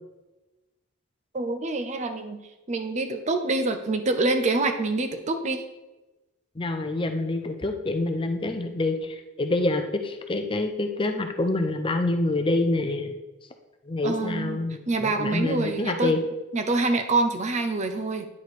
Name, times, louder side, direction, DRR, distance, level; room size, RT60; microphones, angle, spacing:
voice 1, 1.3-2.4 2.7-5.6 14.0-16.1 16.5-18.3, right 2 dB, 35° right, 6 dB, 0.6 m, -26 dB
voice 2, 6.6-13.1 13.9-16.2, left 2 dB, 25° left, 6 dB, 0.5 m, -26 dB
9.6 x 5.0 x 4.1 m, 1.1 s
head